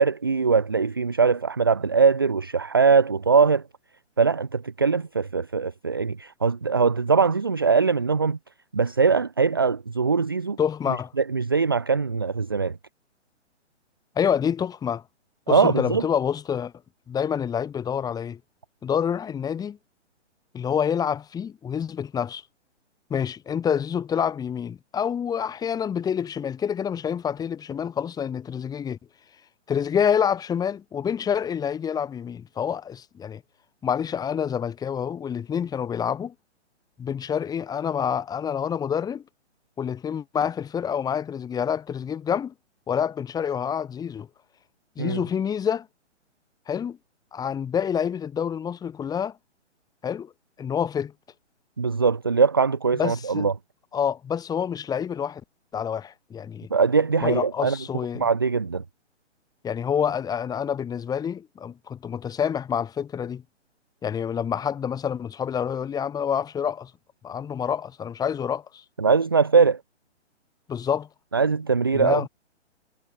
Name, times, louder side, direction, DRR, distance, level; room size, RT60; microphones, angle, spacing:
voice 1, 0.0-3.6 4.2-8.4 8.7-10.6 11.2-12.8 15.5-16.0 45.0-45.2 51.8-53.5 56.7-57.8 58.1-58.8 69.0-69.8 71.3-72.3, right 5 dB, 20° right, 0.3 m, -21 dB
voice 2, 10.6-11.1 14.1-15.0 15.5-16.7 17.1-18.4 18.8-19.8 20.5-22.4 23.1-29.0 29.7-33.4 33.8-36.3 37.0-39.2 39.8-42.5 42.9-44.3 45.0-45.9 46.7-47.0 47.3-49.3 50.0-50.3 50.6-51.1 53.0-53.5 53.9-55.4 55.7-56.7 57.2-58.3 59.6-63.4 64.0-66.9 67.2-68.8 70.7-71.1 71.9-72.3, left 8 dB, 10° left, 3.1 m, -27 dB
figure-of-eight pair, 130°, 36 cm